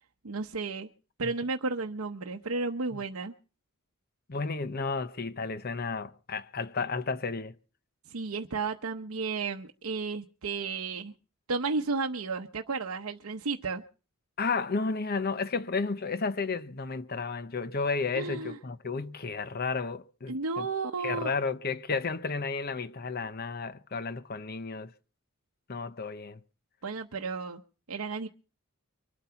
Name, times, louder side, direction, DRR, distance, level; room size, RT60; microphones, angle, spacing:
voice 1, 0.2-0.9 1.2-3.3 8.1-11.1 11.5-13.8 18.1-18.6 20.3-21.3 26.8-27.6 27.9-28.3, right 4 dB, 85° right, 0.9 m, -33 dB
voice 2, 4.3-7.6 14.4-20.7 21.0-24.9 25.7-26.4, left 4 dB, 45° left, 0.8 m, -32 dB
24.0 x 8.7 x 5.8 m
head